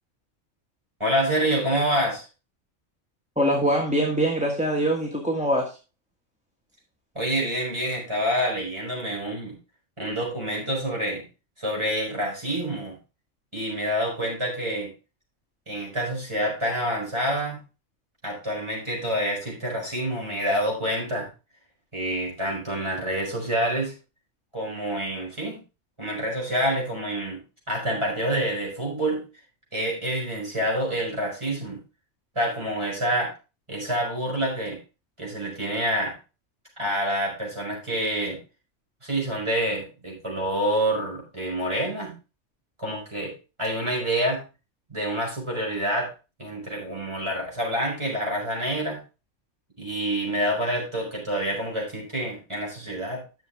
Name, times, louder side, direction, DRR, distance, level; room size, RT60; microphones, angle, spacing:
voice 1, 1.0-2.2 7.1-9.5 10.0-11.2 11.6-12.9 13.5-14.9 15.7-17.6 18.2-21.3 21.9-23.9 24.5-25.6 26.0-27.4 27.7-29.2 29.7-31.8 32.3-33.3 33.7-34.8 35.2-36.2 36.8-38.4 39.0-42.1 42.8-43.3 43.6-44.4 44.9-46.1 46.4-49.0 49.8-53.2, right 1 dB, 25° right, -2 dB, 4.9 m, -27 dB
voice 2, 3.4-5.8, equal, 5° right, 0 dB, 1.4 m, -23 dB
11.5 x 7.0 x 3.4 m, 0.30 s
omnidirectional pair, 1.3 m